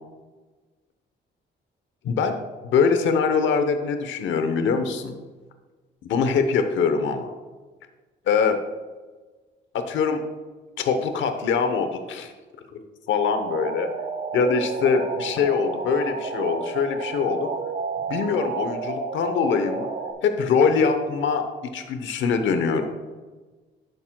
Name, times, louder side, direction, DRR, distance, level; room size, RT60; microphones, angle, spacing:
voice 1, 2.0-2.4 2.6-5.1 6.1-7.3 8.3-8.6 9.7-10.2 10.8-12.3 13.1-13.9 14.3-17.5 18.1-19.9 20.2-21.5 21.7-22.9, left 5 dB, 70° left, 7 dB, 0.9 m, -23 dB
sound 1, 13.2-20.1, right 4 dB, 50° right, 1.7 m, -31 dB
11.0 x 9.2 x 2.3 m, 1.3 s
cardioid pair, 90°, 20 cm